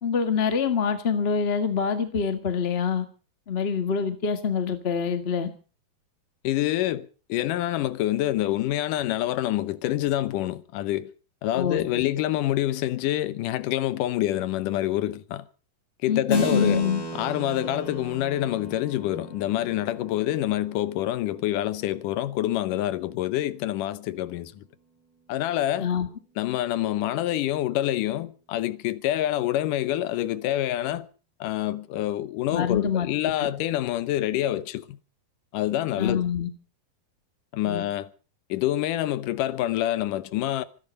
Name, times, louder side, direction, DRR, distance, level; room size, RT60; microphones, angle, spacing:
voice 1, 0.0-3.0 3.5-5.5 11.5-12.0 16.1-17.0 25.8-26.1 32.5-33.1 33.4-33.5 36.0-36.5 37.6-37.8, left 6 dB, 55° left, 0.6 m, -25 dB
voice 2, 6.4-11.1 11.4-15.5 16.0-16.9 17.1-24.6 25.3-25.9 26.4-31.1 31.4-35.0 35.5-36.2 37.5-38.1 38.5-40.6, left 13 dB, 70° left, 2.3 m, -27 dB
Keyboard (musical), 16.3-22.3, right 2 dB, 35° left, 4.6 m, -37 dB
25.0 x 10.5 x 5.3 m
omnidirectional pair, 4.2 m